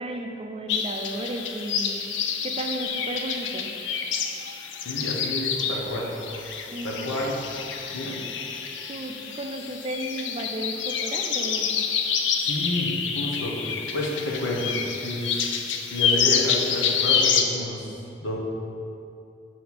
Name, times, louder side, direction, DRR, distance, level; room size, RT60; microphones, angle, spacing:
voice 1, 0.0-2.0 2.4-3.7 6.7-7.0 8.9-11.8, right 1 dB, 30° right, 3 dB, 0.4 m, -33 dB
sound 1, 0.7-17.4, left 6 dB, 70° left, 0.4 m, -28 dB
voice 2, 4.8-6.1 6.8-7.4 7.9-8.2 12.4-14.8 15.0-15.3 15.9-17.9 18.2-18.4, left 1 dB, 90° left, -3 dB, 1.0 m, -30 dB
6.3 x 4.3 x 4.2 m, 2.6 s
head